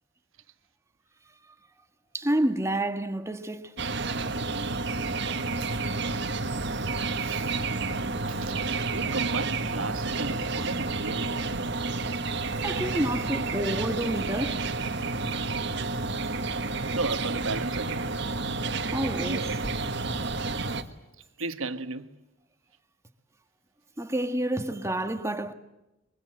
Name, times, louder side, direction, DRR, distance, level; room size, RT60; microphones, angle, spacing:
voice 1, 2.1-3.7 7.2-7.5 12.6-14.7 18.9-19.5 24.0-25.5, right 1 dB, 15° right, 1.5 m, -29 dB
sound 1, 3.8-20.8, right 3 dB, 60° right, 1.5 m, -30 dB
voice 2, 8.9-11.4 13.3-13.4 16.9-18.1 19.3-19.5 21.4-22.1, right 3 dB, 85° right, 1.4 m, -33 dB
25.0 x 23.0 x 7.8 m
head